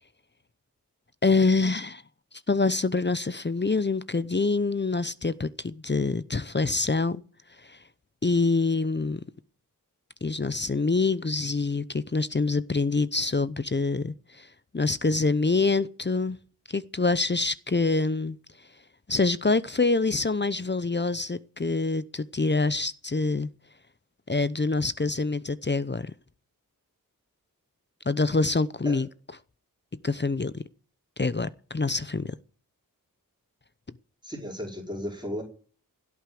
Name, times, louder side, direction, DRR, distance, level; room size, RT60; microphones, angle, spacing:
voice 1, 1.2-2.0 2.5-7.2 7.7-7.8 8.2-9.2 10.2-14.5 14.7-16.4 16.7-18.4 19.1-23.5 24.3-26.1 28.1-29.1 30.0-30.6 31.2-32.3, left 3 dB, 30° left, 0.7 m, -26 dB
voice 2, 34.2-35.4, equal, 15° right, 4.8 m, -35 dB
16.5 x 8.3 x 7.7 m
wide cardioid pair, 55°, 34 cm